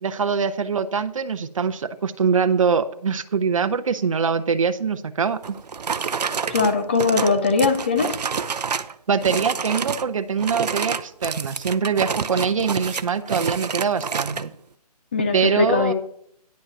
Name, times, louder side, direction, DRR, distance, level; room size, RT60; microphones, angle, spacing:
voice 1, 0.0-5.4 9.1-14.5 15.3-15.9, right 6 dB, 55° right, 10 dB, 0.8 m, -23 dB
sound 1, 5.4-8.9 9.2-10.1 10.4-14.5, right 6 dB, 85° right, 0.6 m, -28 dB
voice 2, 6.5-8.2 15.1-15.9, left 4 dB, 15° left, 7 dB, 0.5 m, -20 dB
10.0 x 5.4 x 5.8 m, 0.71 s
hypercardioid pair, 165°, 20 cm